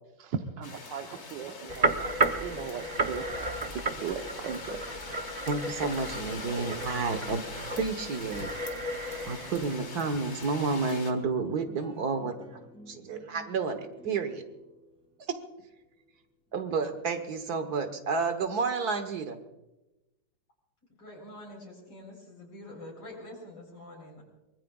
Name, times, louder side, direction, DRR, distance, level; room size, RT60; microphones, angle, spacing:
voice 1, 0.2-2.1 2.4-3.2 3.7-4.8, right 7 dB, 75° right, 4 dB, 1.6 m, -37 dB
sound 1, 0.6-11.1, left 4 dB, 40° left, 1.4 m, -43 dB
sound 2, 1.7-9.8, right 3 dB, 40° right, 0.6 m, -33 dB
voice 2, 5.5-8.5 9.3-12.4 12.9-14.4 15.3-15.4 16.5-19.4, right 4 dB, 60° right, 8 dB, 1.7 m, -30 dB
sound 3, 10.9-17.5, equal, 5° left, 3.3 m, -53 dB
voice 3, 20.9-24.2, left 1 dB, 75° left, -2 dB, 4.8 m, -46 dB
24.0 x 21.5 x 2.4 m, 0.99 s
omnidirectional pair, 2.0 m